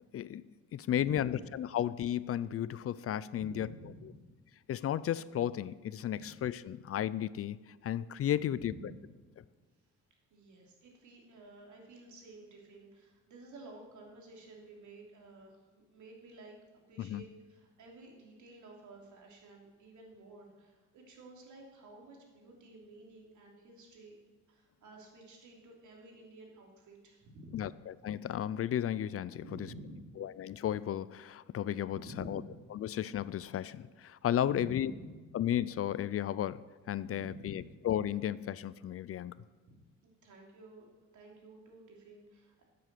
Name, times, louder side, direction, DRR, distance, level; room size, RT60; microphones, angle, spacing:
voice 1, 0.1-3.7 4.7-8.7 17.0-17.2 27.5-29.4 30.2-32.4 32.7-34.9 35.3-39.4, left 11 dB, 50° left, 18 dB, 0.5 m, -34 dB
voice 2, 0.9-1.5 3.3-4.2 6.1-6.3 8.3-8.9 10.3-16.5 16.9-24.1 24.5-27.7 29.4-30.2 31.9-32.6 34.4-35.1 37.0-37.7 39.7-39.8 40.2-40.9 41.1-42.6, right 1 dB, 75° right, 0 dB, 3.2 m, -52 dB
12.5 x 7.7 x 7.7 m, 1.3 s
cardioid pair, 90°, 30 cm